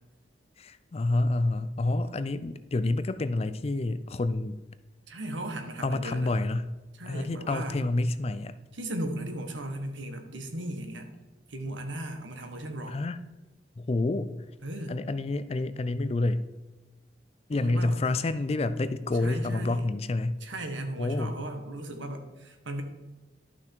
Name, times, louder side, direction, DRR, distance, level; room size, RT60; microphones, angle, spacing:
voice 1, 0.6-4.6 5.8-6.7 7.1-8.6 12.9-13.2 13.8-14.3 14.9-16.5 17.5-20.4 21.0-21.3, left 2 dB, 30° left, 13 dB, 0.4 m, -28 dB
voice 2, 5.1-6.4 6.9-7.8 8.7-11.1 11.5-13.0 14.6-15.0 17.5-18.0 19.2-19.9 20.4-22.8, right 1 dB, 80° right, 5 dB, 1.4 m, -36 dB
11.5 x 6.1 x 4.5 m, 1.1 s
head